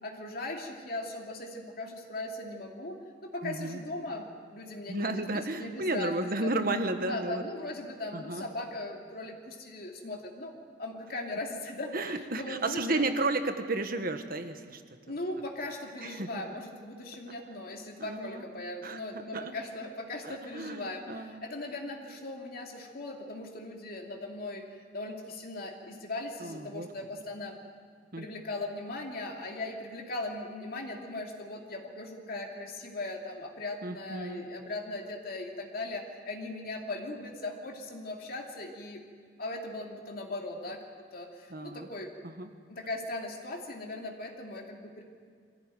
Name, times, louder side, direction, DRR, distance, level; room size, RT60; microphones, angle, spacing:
voice 1, 0.0-6.1 6.4-6.5 7.1-13.1 15.1-27.6 28.2-39.0 39.4-40.8 41.1-42.1 42.7-45.0, left 2 dB, 55° left, 1 dB, 2.7 m, -39 dB
voice 2, 3.4-3.8 4.9-7.4 8.1-8.5 11.9-14.8 16.0-16.4 17.3-17.4 18.0-18.4 18.8-19.5 20.2-21.5 26.4-26.9 28.1-28.3 33.8-34.4 41.5-41.9 42.2-42.5, right 2 dB, 55° right, 7 dB, 1.6 m, -33 dB
23.5 x 15.5 x 9.3 m, 2.1 s
head